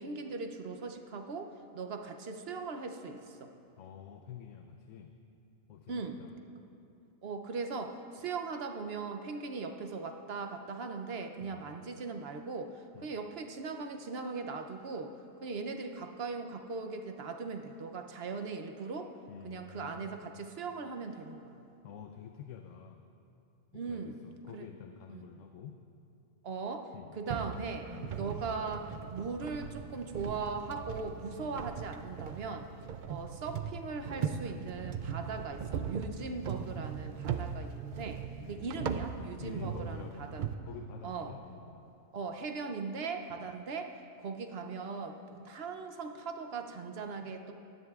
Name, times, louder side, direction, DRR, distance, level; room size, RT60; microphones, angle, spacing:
voice 1, 0.0-3.5 5.9-6.2 7.2-15.1 15.4-19.1 19.4-21.6 23.7-24.2 24.5-24.7 25.1-25.2 26.4-32.7 33.1-40.5 41.0-41.3 42.1-47.5, right 4 dB, 55° right, 6 dB, 0.8 m, -39 dB
voice 2, 3.8-5.1 5.7-6.4 11.4-11.7 12.9-13.1 19.3-20.3 21.8-23.0 23.7-25.8 26.9-27.1 27.9-28.2 31.3-31.6 38.4-39.0 39.4-41.9 43.3-43.4, left 8 dB, 70° left, 5 dB, 0.9 m, -48 dB
sound 1, 27.3-40.5, right 7 dB, 75° right, 0.4 m, -39 dB
17.5 x 12.5 x 2.4 m, 2.6 s
omnidirectional pair, 1.4 m